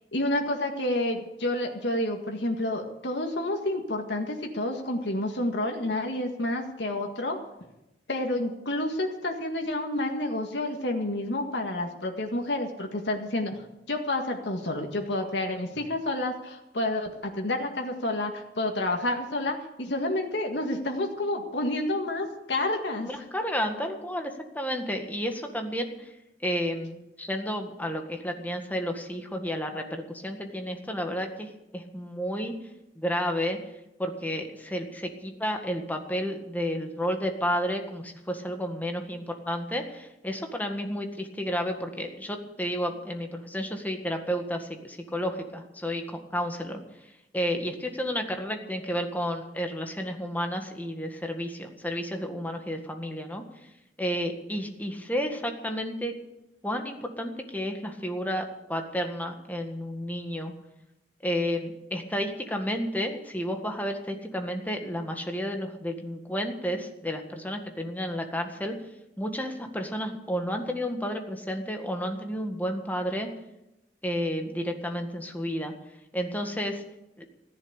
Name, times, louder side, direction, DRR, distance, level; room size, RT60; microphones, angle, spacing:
voice 1, 0.1-7.4 8.1-13.6 13.9-23.1, left 1 dB, 80° left, 3 dB, 1.9 m, -29 dB
voice 2, 23.0-26.1 26.4-32.6 33.0-33.6 34.0-46.8 47.3-53.4 54.0-56.1 56.6-60.5 61.2-68.8 69.2-73.3 74.0-75.7 76.1-76.8 77.2-77.3, equal, 10° left, 4 dB, 1.8 m, -31 dB
15.0 x 10.5 x 8.2 m, 0.91 s
head